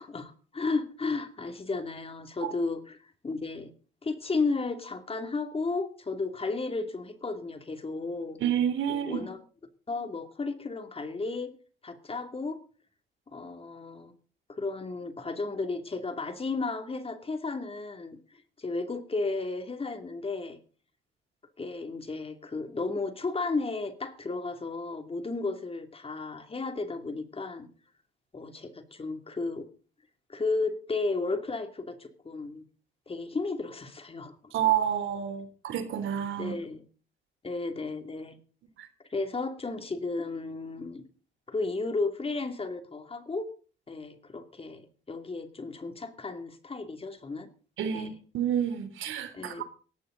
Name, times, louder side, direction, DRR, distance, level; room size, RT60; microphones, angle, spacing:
voice 1, 0.0-3.7 4.0-8.4 8.9-9.4 9.9-11.5 11.8-12.6 13.3-14.1 14.5-20.6 21.6-27.7 28.3-29.7 30.3-32.6 33.1-34.5 36.4-36.8 37.4-38.4 39.1-41.0 41.5-43.5 43.9-47.5 47.9-48.1 49.3-49.6, left 3 dB, 30° left, 2.7 m, -33 dB
voice 2, 8.4-9.3 34.5-36.5 38.8-38.9 47.8-49.6, right 9 dB, 80° right, 3.5 m, -29 dB
17.5 x 14.5 x 3.9 m
cardioid pair, 90°, 20 cm